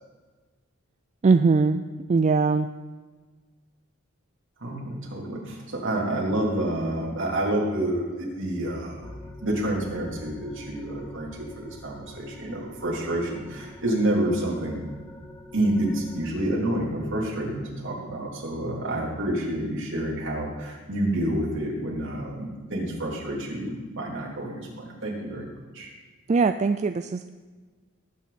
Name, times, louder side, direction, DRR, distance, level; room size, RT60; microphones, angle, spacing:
voice 1, 1.2-1.8 2.1-2.7 26.3-27.3, right 4 dB, 35° right, 9 dB, 0.3 m, -21 dB
voice 2, 4.6-14.9 15.5-25.5 25.7-25.9, right 1 dB, 65° right, -3 dB, 3.5 m, -28 dB
sound 1, 9.0-16.3, left 1 dB, 15° left, 0.9 m, -45 dB
19.0 x 9.1 x 4.3 m, 1.3 s
head